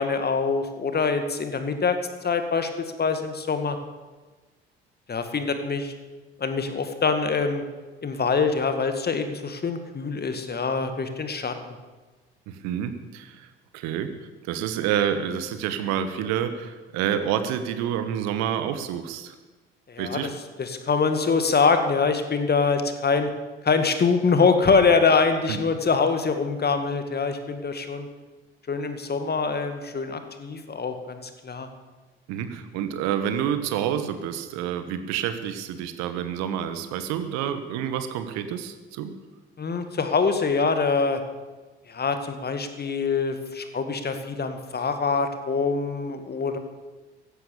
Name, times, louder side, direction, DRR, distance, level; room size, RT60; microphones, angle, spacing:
voice 1, 0.0-2.0 2.2-3.8 5.1-5.9 6.4-7.6 8.0-11.5 19.9-20.3 20.6-23.3 23.6-28.1 28.7-31.7 39.6-41.2 41.9-46.6, left 4 dB, 35° left, 8 dB, 2.0 m, -24 dB
voice 2, 12.5-14.1 14.4-19.3 20.0-20.3 25.5-25.6 32.3-39.1, right 9 dB, 65° right, 10 dB, 1.3 m, -28 dB
15.5 x 11.5 x 7.0 m, 1.3 s
figure-of-eight pair, 50°, 29 cm